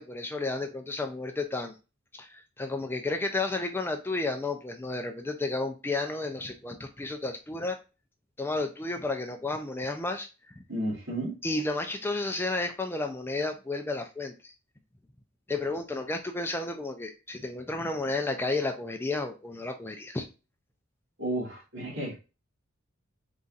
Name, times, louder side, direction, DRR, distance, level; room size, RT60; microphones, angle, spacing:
voice 1, 0.0-1.7 2.1-7.8 8.4-10.6 11.4-14.5 15.5-20.3, left 2 dB, 10° left, 6 dB, 0.4 m, -32 dB
voice 2, 10.7-11.4 21.2-22.2, right 1 dB, 65° right, -2 dB, 1.9 m, -32 dB
4.0 x 3.9 x 2.4 m, 0.30 s
head